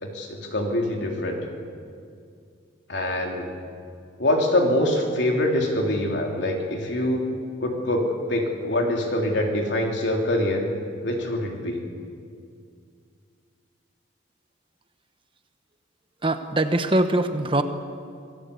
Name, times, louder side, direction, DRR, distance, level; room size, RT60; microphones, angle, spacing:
voice 1, 0.0-1.4 2.9-3.5 4.2-7.3 7.6-10.6 11.0-11.8, left 1 dB, 65° left, 1 dB, 3.4 m, -24 dB
voice 2, 16.2-17.6, right 1 dB, 25° right, 8 dB, 1.1 m, -22 dB
26.5 x 18.0 x 8.4 m, 2.3 s
head